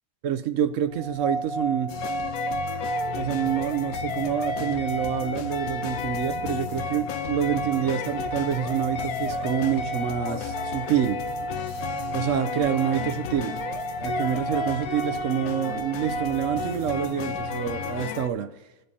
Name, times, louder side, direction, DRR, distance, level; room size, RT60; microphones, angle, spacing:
voice 1, 0.2-2.0 3.1-11.2 12.1-13.6 14.0-18.5, right 10 dB, 65° right, 0.9 m, -27 dB
sound 1, 0.9-18.1, right 3 dB, 25° right, 0.9 m, -33 dB
sound 2, 1.9-18.3, left 9 dB, 85° left, 1.1 m, -33 dB
19.5 x 7.7 x 2.8 m
omnidirectional pair, 1.5 m